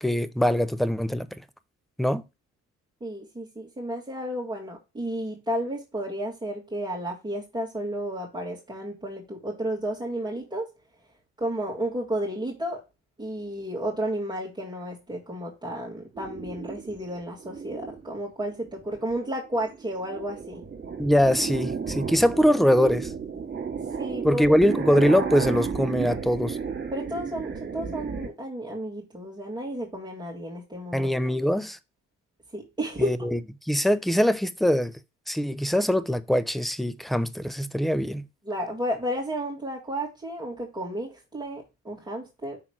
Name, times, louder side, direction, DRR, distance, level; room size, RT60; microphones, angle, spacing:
voice 1, 0.0-1.3 2.0-2.2 21.0-23.1 24.2-26.6 30.9-31.8 33.0-33.4 33.7-34.9 35.3-38.2, equal, ahead, 0.5 m, -22 dB
voice 2, 3.0-10.7 11.4-12.8 13.2-20.6 24.0-24.6 26.9-31.1 32.5-33.2 38.4-42.6, right 1 dB, 15° right, 1.9 m, -32 dB
sound 1, 16.1-18.1 18.7-19.1 19.5-28.3, right 6 dB, 35° right, 2.3 m, -33 dB
5.8 x 3.7 x 4.8 m
cardioid pair, 90°, 30 cm